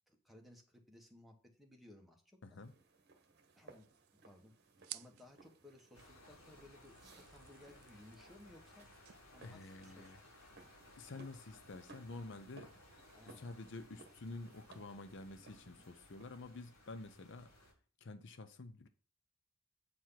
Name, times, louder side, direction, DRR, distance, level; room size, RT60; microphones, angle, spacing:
voice 1, 0.1-2.6 3.6-3.9 4.2-4.5 4.9-8.9 9.3-10.1 13.1-13.5, left 1 dB, ahead, 1.4 m, -60 dB
voice 2, 2.4-2.7 9.4-10.2 10.9-12.7 13.3-17.5 18.0-18.9, left 2 dB, 55° left, 0.6 m, -49 dB
sound 1, 2.6-16.2, right 3 dB, 50° right, 1.3 m, -63 dB
sound 2, 3.4-11.1, right 16 dB, 85° right, 0.4 m, -58 dB
sound 3, 5.9-17.7, left 1 dB, 75° left, 4.6 m, -62 dB
8.5 x 4.7 x 5.8 m
head